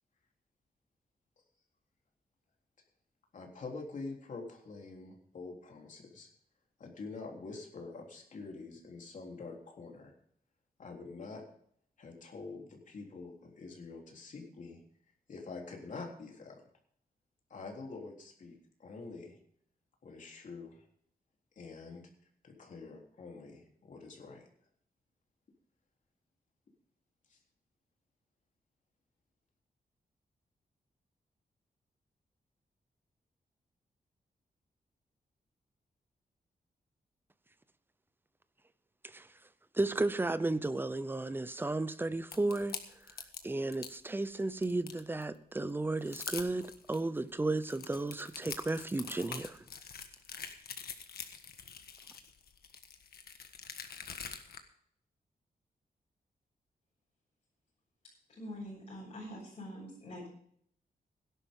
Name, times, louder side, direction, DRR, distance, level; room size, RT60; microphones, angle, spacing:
voice 1, 3.3-6.3 6.8-10.1 10.8-11.4 12.0-14.8 15.3-16.6 17.5-19.4 20.0-20.9 21.5-22.1 22.4-24.5 27.3-27.4, left 3 dB, 55° left, 3.5 m, -46 dB
voice 2, 39.7-42.8 43.4-49.6, right 2 dB, 15° right, 0.7 m, -33 dB
sound 1, 42.3-44.0 44.4-45.2 45.7-45.8 46.0-47.0 47.5-54.6, left 7 dB, 85° left, 1.5 m, -45 dB
voice 3, 58.3-60.3, equal, 40° left, 7.0 m, -45 dB
17.5 x 11.0 x 3.8 m
wide cardioid pair, 175°, 15 cm